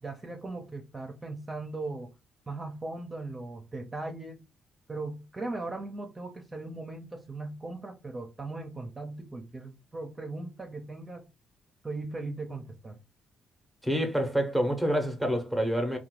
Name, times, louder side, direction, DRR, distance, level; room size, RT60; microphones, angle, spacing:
voice 1, 0.0-2.1 2.5-4.4 4.9-11.3 11.8-13.0, right 2 dB, 25° right, 0.6 m, -38 dB
voice 2, 13.8-16.0, equal, 5° left, 0.8 m, -27 dB
2.7 x 2.2 x 3.0 m
cardioid pair, 90°, 0 cm